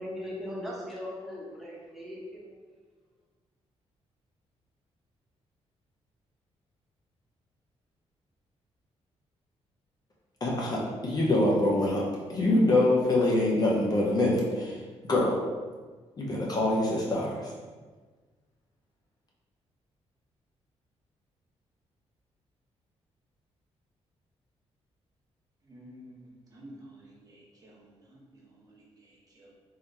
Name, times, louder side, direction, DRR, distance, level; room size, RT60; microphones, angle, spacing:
voice 1, 0.0-2.6, left 1 dB, ahead, -5 dB, 1.0 m, -39 dB
voice 2, 10.4-12.0 12.3-15.4 16.2-17.5, left 1 dB, 35° left, -3 dB, 0.7 m, -25 dB
voice 3, 25.6-29.5, equal, 35° right, -4 dB, 0.9 m, -52 dB
3.8 x 2.9 x 3.3 m, 1.4 s
cardioid pair, 120°, 11 cm